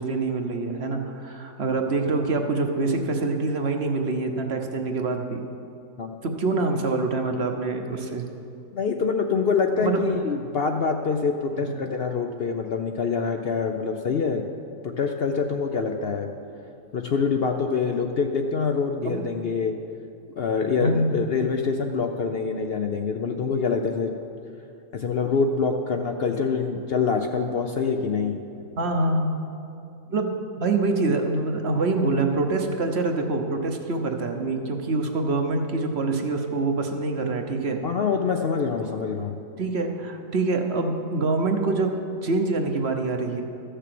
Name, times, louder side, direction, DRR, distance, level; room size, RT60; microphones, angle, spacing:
voice 1, 0.0-5.4 6.2-8.3 9.8-10.1 11.6-11.7 19.0-19.2 20.8-21.2 28.8-29.3 30.1-30.3 30.6-37.8 38.8-39.0 39.6-43.4, right 3 dB, 50° right, 4 dB, 1.1 m, -25 dB
voice 2, 8.7-14.4 14.8-16.3 16.9-19.7 20.4-24.1 24.9-28.4 37.8-39.3, left 5 dB, 55° left, 4 dB, 0.7 m, -25 dB
13.5 x 6.7 x 7.6 m, 2.6 s
omnidirectional pair, 1.5 m